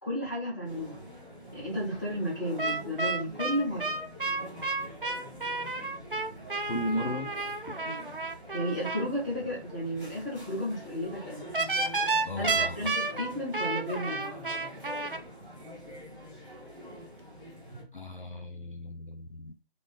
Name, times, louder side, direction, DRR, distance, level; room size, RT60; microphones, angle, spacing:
voice 1, 0.0-1.0 1.5-4.0 7.8-8.0 8.5-11.4 12.4-14.4, equal, 15° left, 1.7 m, -33 dB
sound 1, 0.6-17.8, left 1 dB, 5° right, 1.6 m, -46 dB
sound 2, 2.6-9.1 11.5-15.2, right 3 dB, 50° right, 0.7 m, -31 dB
voice 2, 6.7-7.3 7.7-7.8 12.2-12.9 17.9-19.5, equal, 50° left, 0.5 m, -35 dB
3.8 x 3.3 x 3.8 m
figure-of-eight pair, 180°, 33 cm